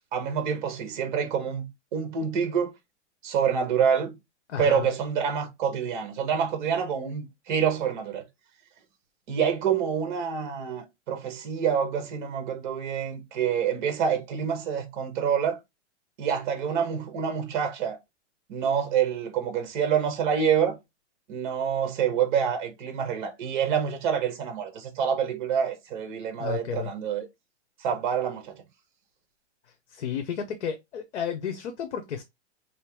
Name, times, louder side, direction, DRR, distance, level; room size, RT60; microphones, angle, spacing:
voice 1, 0.1-1.7 1.9-2.7 3.2-4.2 4.6-8.2 9.3-15.6 16.2-18.0 18.5-20.8 21.3-27.3 27.8-28.6, right 7 dB, 40° right, 1.3 m, -27 dB
voice 2, 4.5-4.9 26.4-26.9 29.9-32.2, left 8 dB, 70° left, 0.9 m, -32 dB
3.4 x 2.9 x 3.4 m
hypercardioid pair, 160°, 35 cm